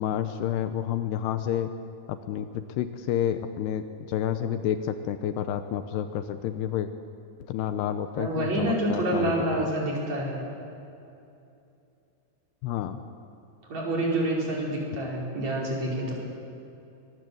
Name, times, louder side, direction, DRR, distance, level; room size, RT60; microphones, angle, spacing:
voice 1, 0.0-1.7 2.1-6.9 7.5-9.3 9.6-9.7 12.6-13.0, left 10 dB, 80° left, 9 dB, 2.8 m, -29 dB
voice 2, 8.2-10.4 13.7-16.1, right 1 dB, 40° right, -3 dB, 6.0 m, -27 dB
24.0 x 21.5 x 7.9 m, 2.7 s
omnidirectional pair, 5.0 m